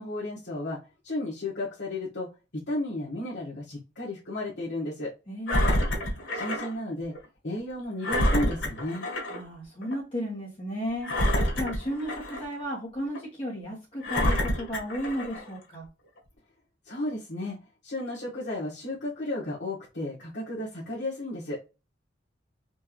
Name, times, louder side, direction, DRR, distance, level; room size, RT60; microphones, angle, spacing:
voice 1, 0.0-2.3 2.5-5.1 6.3-7.1 7.4-9.1 16.8-17.6 17.8-21.6, left 1 dB, 70° left, -8 dB, 1.5 m, -33 dB
voice 2, 5.3-5.8 9.2-11.1 11.6-15.9, equal, 30° left, -5 dB, 1.3 m, -34 dB
Engine, 5.5-6.7 7.2-7.3 8.0-9.4 9.8-10.0 11.0-12.6 13.1-13.2 14.0-15.5 16.2-16.3, equal, 90° left, 1.4 m, -27 dB
4.4 x 2.6 x 3.0 m, 0.28 s
head